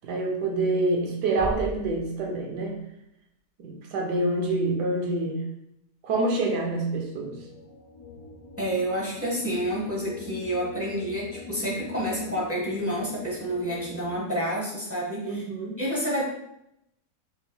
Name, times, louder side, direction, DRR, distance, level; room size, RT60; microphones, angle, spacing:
voice 1, 0.0-2.8 3.6-5.4 6.0-7.4 15.2-15.8, right 2 dB, 85° right, 1 dB, 1.3 m, -27 dB
sound 1, 1.4-3.3, equal, 60° right, 1.2 m, -38 dB
sound 2, 6.8-14.1, left 4 dB, 80° left, 1.3 m, -44 dB
voice 2, 8.6-15.5 15.8-16.3, equal, 20° right, -5 dB, 0.4 m, -29 dB
4.4 x 3.2 x 2.2 m, 0.79 s
omnidirectional pair, 1.8 m